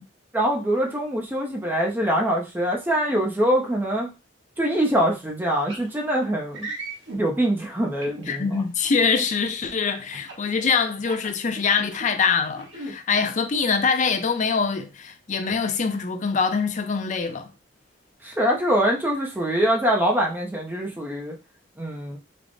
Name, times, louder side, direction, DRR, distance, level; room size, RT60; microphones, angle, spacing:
voice 1, 0.3-4.1 4.6-6.7 7.2-8.6 18.2-21.4 21.8-22.2, equal, 10° right, 0.5 m, -24 dB
sound 1, 5.7-5.9 6.5-7.2 8.0-8.6 10.1-10.5 11.0-12.0 12.5-12.9, right 2 dB, 75° right, 1.2 m, -36 dB
voice 2, 8.3-17.5, left 5 dB, 40° left, 0.4 m, -24 dB
3.4 x 2.0 x 3.8 m
head